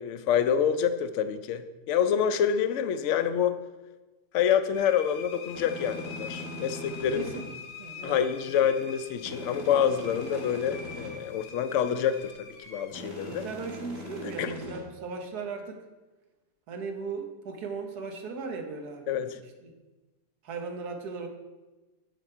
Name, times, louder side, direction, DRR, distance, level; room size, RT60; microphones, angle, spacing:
voice 1, 0.0-3.6 4.3-7.3 8.0-13.4 14.2-14.5 19.1-19.4, left 8 dB, 65° left, 11 dB, 0.8 m, -27 dB
sound 1, 4.7-14.4, left 5 dB, 85° left, 1.4 m, -46 dB
sound 2, 5.5-7.4 9.2-11.1 12.9-14.8, left 1 dB, 55° right, 2.5 m, -41 dB
voice 2, 7.1-7.5 7.8-8.2 13.3-15.8 16.7-19.3 19.6-19.7 20.4-21.3, right 4 dB, 90° right, 4 dB, 1.5 m, -37 dB
7.8 x 6.0 x 4.4 m, 1.2 s
omnidirectional pair, 1.6 m